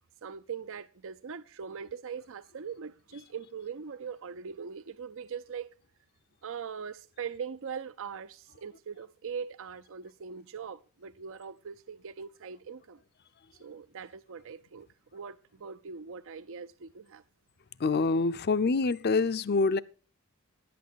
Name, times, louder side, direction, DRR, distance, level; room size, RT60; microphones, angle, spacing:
voice 1, 0.2-5.7 6.4-13.0 13.6-14.9 15.1-17.2, right 6 dB, 65° right, 0.6 m, -41 dB
voice 2, 17.8-19.8, left 4 dB, 45° left, 0.5 m, -26 dB
11.0 x 8.7 x 6.9 m
head